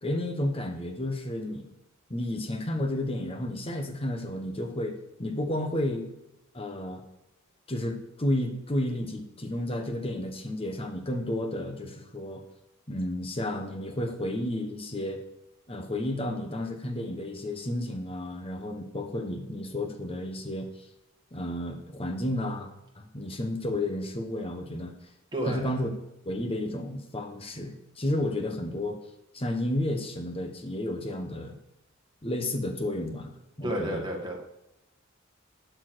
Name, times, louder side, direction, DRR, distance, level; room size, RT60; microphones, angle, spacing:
voice 1, 0.0-1.7 2.1-6.1 6.5-7.0 7.7-12.4 12.9-15.2 15.7-20.7 21.3-22.7 23.0-24.9 25.5-25.9 26.2-29.0 29.3-31.6 32.2-33.3 33.6-34.0, left 1 dB, 30° left, 4 dB, 1.2 m, -32 dB
voice 2, 25.3-25.7 33.6-34.4, right 1 dB, 20° right, 0 dB, 1.7 m, -31 dB
12.0 x 4.7 x 6.3 m, 0.90 s
head